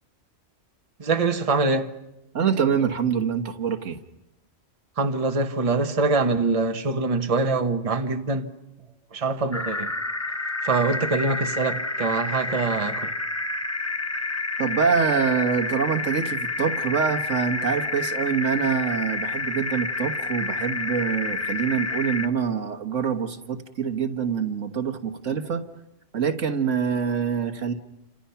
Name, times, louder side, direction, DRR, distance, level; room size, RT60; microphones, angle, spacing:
voice 1, 1.0-1.9 5.0-8.5 9.1-9.9 10.6-13.1, right 3 dB, 30° right, 1.2 m, -24 dB
voice 2, 2.3-4.0 14.6-25.6 26.1-27.7, right 6 dB, 80° right, 1.8 m, -25 dB
sound 1, 9.5-22.3, left 3 dB, 15° left, 0.8 m, -29 dB
29.0 x 26.5 x 5.8 m
omnidirectional pair, 1.3 m